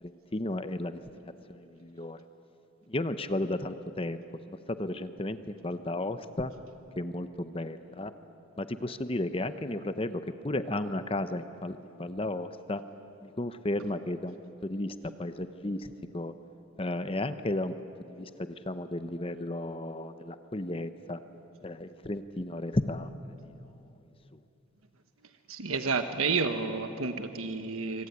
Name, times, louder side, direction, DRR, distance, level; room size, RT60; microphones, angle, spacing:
voice 1, 0.0-2.2 2.9-4.2 4.5-6.5 7.0-8.1 8.6-12.8 13.2-16.3 16.8-17.7 18.1-21.2 21.6-23.1 23.4-23.5, left 1 dB, 25° left, 11 dB, 0.8 m, -34 dB
voice 2, 25.5-28.1, right 4 dB, 85° right, 7 dB, 1.3 m, -30 dB
25.0 x 25.0 x 9.5 m, 2.9 s
head